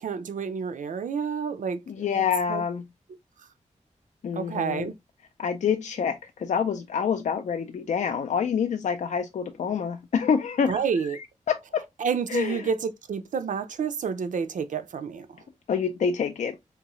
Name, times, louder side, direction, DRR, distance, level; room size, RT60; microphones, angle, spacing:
voice 1, 0.0-1.8 2.2-2.3 2.5-2.6 4.4-4.9 10.7-11.2 12.0-15.3, right 6 dB, 80° right, 0.5 m, -29 dB
voice 2, 1.9-2.8 4.2-4.9 5.4-11.8 12.3-12.7 15.7-16.6, left 7 dB, 65° left, 0.4 m, -27 dB
3.6 x 3.0 x 2.9 m
wide cardioid pair, 170°, 13 cm